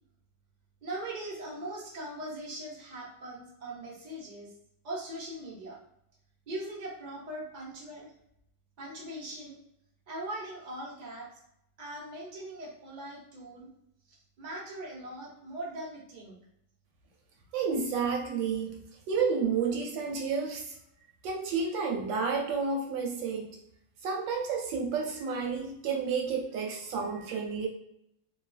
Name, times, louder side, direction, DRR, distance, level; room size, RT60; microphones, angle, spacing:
voice 1, 0.8-4.5 4.8-5.8 6.5-8.1 8.8-9.6 10.1-11.3 11.8-13.7 14.1-16.4, right 1 dB, 50° right, -5 dB, 0.5 m, -40 dB
voice 2, 17.5-18.8 19.1-20.7 21.2-23.5 24.0-27.7, right 5 dB, 75° right, 1 dB, 1.2 m, -30 dB
3.1 x 2.3 x 2.3 m, 0.76 s
omnidirectional pair, 2.2 m